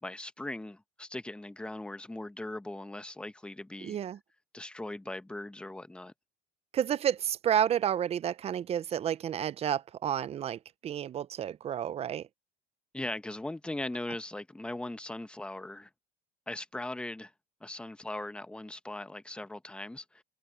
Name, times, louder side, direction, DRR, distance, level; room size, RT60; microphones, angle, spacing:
voice 1, 0.0-4.0 4.5-6.1 12.9-15.9 16.5-17.3 17.6-20.2, left 1 dB, 5° left, 1.1 m, -39 dB
voice 2, 3.8-4.2 6.7-12.3, right 9 dB, 30° right, 0.6 m, -30 dB
supercardioid pair, 120°, 19 cm